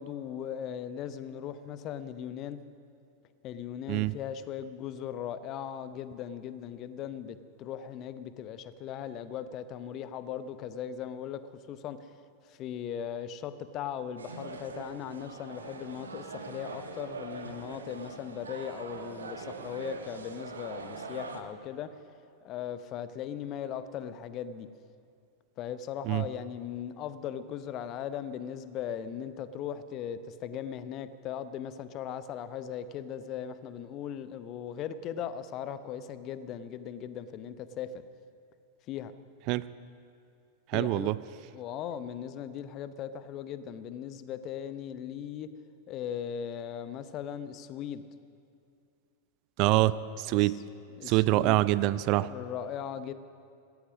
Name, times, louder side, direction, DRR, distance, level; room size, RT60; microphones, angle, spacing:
voice 1, 0.0-2.6 3.4-11.4 11.7-12.0 12.5-21.9 22.4-24.7 25.6-38.0 38.9-39.1 40.7-41.1 41.5-45.5 45.9-48.0 50.3-50.6 51.0-51.6 52.1-53.1, left 9 dB, 35° left, 13 dB, 0.8 m, -38 dB
sound 1, 14.2-21.4, right 4 dB, 70° right, 1.3 m, -42 dB
voice 2, 40.7-41.2 49.6-50.6 51.1-52.3, right 17 dB, 40° right, 17 dB, 0.4 m, -25 dB
17.0 x 13.0 x 6.3 m, 2.6 s
figure-of-eight pair, 90°, 0 cm